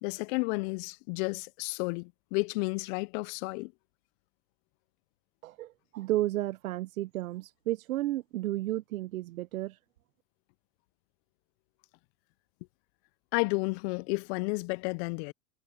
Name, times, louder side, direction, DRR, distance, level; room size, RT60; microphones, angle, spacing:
voice 1, 0.0-3.7 13.3-15.3, left 29 dB, 50° left, 0.5 m, -32 dB
voice 2, 5.4-9.8, right 15 dB, 85° right, 0.7 m, -32 dB
hypercardioid pair, 105°, 41 cm